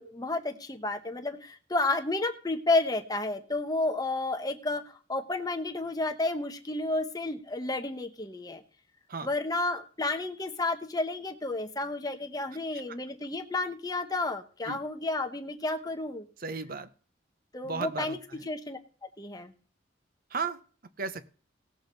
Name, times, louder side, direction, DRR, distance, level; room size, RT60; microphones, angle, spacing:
voice 1, 0.0-8.6 9.2-16.3 17.5-18.2 18.5-18.8 19.2-19.5, left 2 dB, 20° left, 6 dB, 1.0 m, -31 dB
voice 2, 16.4-16.9 17.6-18.4 20.3-20.6 21.0-21.3, right 4 dB, 50° right, 13 dB, 0.8 m, -35 dB
18.0 x 6.9 x 4.0 m, 0.40 s
head